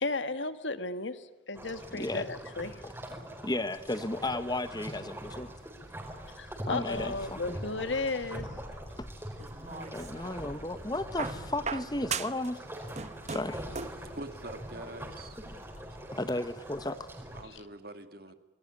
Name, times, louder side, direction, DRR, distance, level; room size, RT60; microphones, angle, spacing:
voice 1, 0.0-2.8 6.4-8.5 17.5-17.6, left 3 dB, 75° left, 12 dB, 1.6 m, -34 dB
sound 1, 1.5-17.4, equal, 15° right, 4.5 m, -43 dB
voice 2, 1.9-2.3 2.8-2.9 3.4-5.5 6.7-7.6 9.0-9.1 9.7-12.6 13.3-13.9 16.1-17.1, left 2 dB, 20° left, 13 dB, 1.0 m, -34 dB
sound 2, 9.4-10.4 11.2-12.5 12.8-14.1 15.1-15.2, right 5 dB, 35° right, 1.0 m, -38 dB
voice 3, 14.0-15.4 16.8-16.9 17.3-18.3, right 2 dB, 50° right, 9 dB, 2.1 m, -44 dB
26.5 x 20.5 x 9.9 m, 1.3 s
head